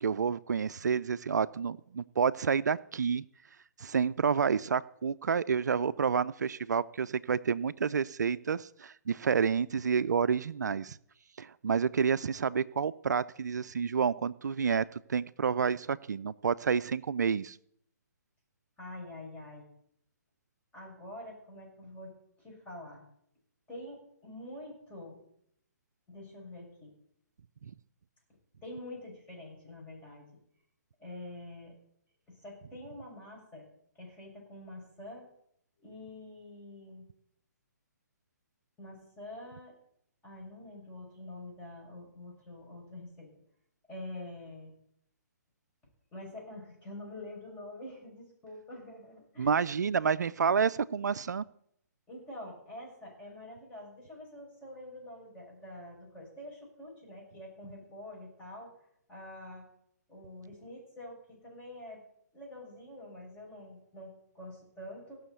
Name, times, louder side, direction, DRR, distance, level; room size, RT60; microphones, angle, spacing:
voice 1, 0.0-3.2 3.8-11.0 11.4-17.6 27.6-27.7 49.4-51.4, right 6 dB, 75° right, 17 dB, 0.4 m, -29 dB
voice 2, 18.8-19.7 20.7-23.0 23.7-25.2 26.1-26.9 28.6-30.3 31.0-31.7 32.3-33.7 34.0-35.3 35.8-37.1 38.8-39.7 40.2-43.3 43.9-44.7 46.1-49.6 52.1-58.7 59.1-59.7 60.1-62.0 62.3-65.2, left 1 dB, 15° left, -2 dB, 6.7 m, -46 dB
17.0 x 6.4 x 8.1 m, 0.73 s
figure-of-eight pair, 135°, 9 cm